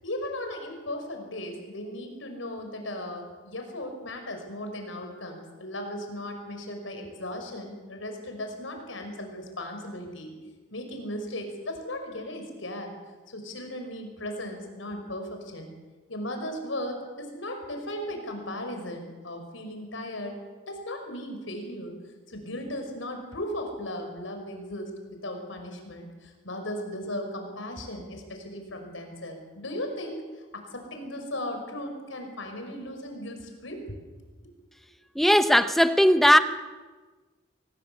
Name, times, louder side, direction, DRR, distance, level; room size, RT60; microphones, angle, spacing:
voice 1, 0.0-10.3 10.7-12.9 13.3-15.7 16.1-20.4 20.7-22.0 22.3-30.2 30.7-33.8 34.4-34.5, left 1 dB, 90° left, 4 dB, 5.7 m, -36 dB
voice 2, 35.1-36.4, equal, ahead, 10 dB, 0.8 m, -18 dB
25.0 x 18.5 x 8.2 m, 1.3 s
head